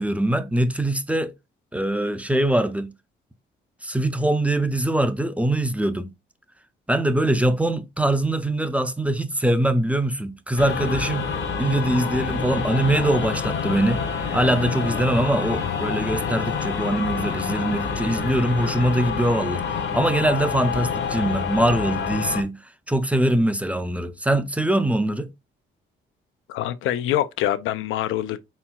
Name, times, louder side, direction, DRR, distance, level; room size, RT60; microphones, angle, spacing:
voice 1, 0.0-1.3 1.7-2.9 3.8-6.1 6.9-11.3 11.6-14.0 14.3-22.6 22.9-25.3, right 1 dB, 5° right, 0.4 m, -22 dB
sound 1, 10.6-22.4, left 6 dB, 60° left, 0.9 m, -27 dB
voice 2, 26.5-28.4, left 12 dB, 85° left, 0.4 m, -25 dB
4.3 x 3.6 x 2.2 m
cardioid pair, 90°, 20 cm